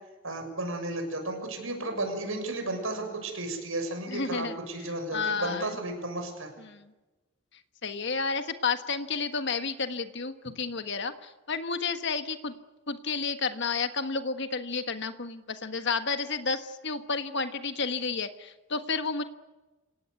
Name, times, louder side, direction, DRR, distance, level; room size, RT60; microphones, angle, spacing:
voice 1, 0.2-6.5, right 2 dB, 70° right, 5 dB, 6.9 m, -33 dB
voice 2, 4.1-4.6 5.1-5.7 6.7-6.9 7.8-12.5 12.9-19.2, left 4 dB, 55° left, 9 dB, 1.4 m, -31 dB
27.5 x 17.5 x 9.5 m, 1.1 s
head